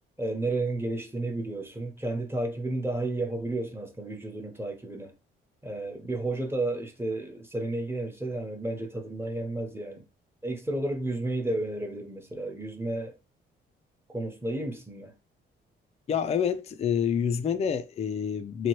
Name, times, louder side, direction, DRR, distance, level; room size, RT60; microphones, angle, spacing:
voice 1, 0.2-5.1 5.6-10.1 10.4-13.1 14.1-15.1, right 2 dB, 10° right, 0.8 m, -32 dB
voice 2, 16.1-18.7, left 7 dB, 30° left, 0.4 m, -27 dB
2.9 x 2.2 x 3.0 m
cardioid pair, 90°, 20 cm